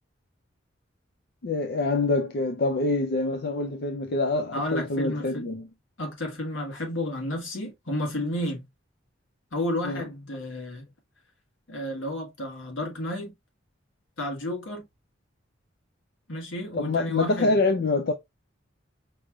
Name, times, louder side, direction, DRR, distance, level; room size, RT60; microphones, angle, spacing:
voice 1, 1.4-5.7 9.8-10.0 16.8-18.1, left 3 dB, 55° left, 0.5 m, -25 dB
voice 2, 4.5-5.5 6.0-8.6 9.5-10.8 11.7-13.3 14.2-14.8 16.3-17.5, left 1 dB, 75° left, 1.6 m, -31 dB
5.3 x 3.2 x 2.3 m
head